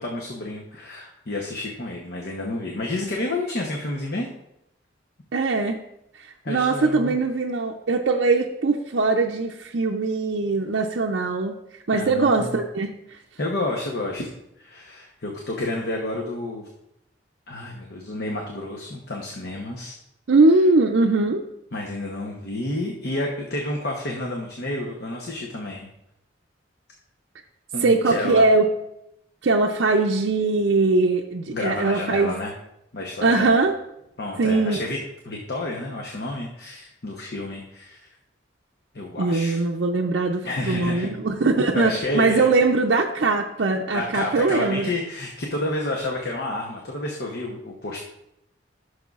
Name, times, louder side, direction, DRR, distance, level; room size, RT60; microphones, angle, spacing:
voice 1, 0.0-4.3 6.4-7.1 11.9-12.6 13.4-14.3 14.6-16.7 17.5-19.9 21.3-21.4 21.7-25.9 27.7-28.4 31.5-32.5 32.9-33.6 34.2-35.0 35.3-38.1 38.9-39.6 40.4-41.1 41.7-42.5 43.9-48.0, left 2 dB, 55° left, -1 dB, 0.9 m, -30 dB
voice 2, 5.3-5.8 6.1-13.2 20.3-21.4 27.8-28.6 29.4-32.3 33.2-33.8 34.4-34.8 39.2-44.9, right 3 dB, 65° right, -1 dB, 0.5 m, -21 dB
13.0 x 6.5 x 2.4 m, 0.83 s
head